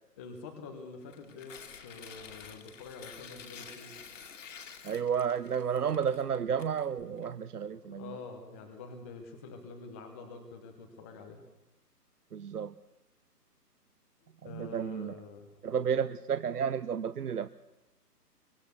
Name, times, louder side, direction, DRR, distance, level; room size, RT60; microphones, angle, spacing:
voice 1, 0.2-1.5 1.8-3.9 7.7-11.4 14.4-15.6, left 4 dB, 10° left, 4 dB, 0.7 m, -46 dB
Tearing, 1.0-7.3, left 6 dB, 50° left, 2.5 m, -50 dB
voice 2, 4.8-8.2 12.3-12.7 14.4-15.1 15.6-17.5, right 7 dB, 70° right, 14 dB, 0.8 m, -32 dB
24.0 x 18.0 x 6.9 m, 0.99 s
figure-of-eight pair, 140°, 48 cm